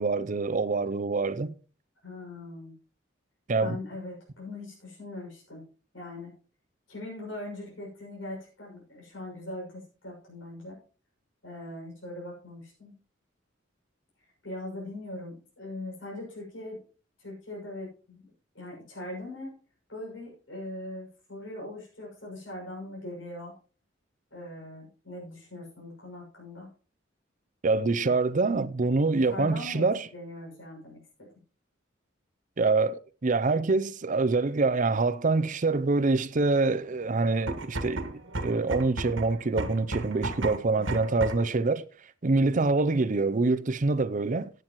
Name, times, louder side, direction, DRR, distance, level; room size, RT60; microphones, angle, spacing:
voice 1, 0.0-1.5 3.5-3.8 27.6-30.1 32.6-41.9 42.2-44.5, right 3 dB, 40° right, 0.6 m, -25 dB
voice 2, 2.0-2.7 3.6-5.6 5.9-6.3 6.9-10.8 11.4-12.9 14.4-16.8 17.2-18.2 18.5-19.6 19.9-23.6 24.3-26.7 29.2-31.3 40.8-40.9, left 1 dB, 85° left, 6.3 m, -41 dB
sound 1, 37.3-41.6, right 2 dB, 80° right, 1.6 m, -34 dB
16.0 x 9.2 x 3.1 m
head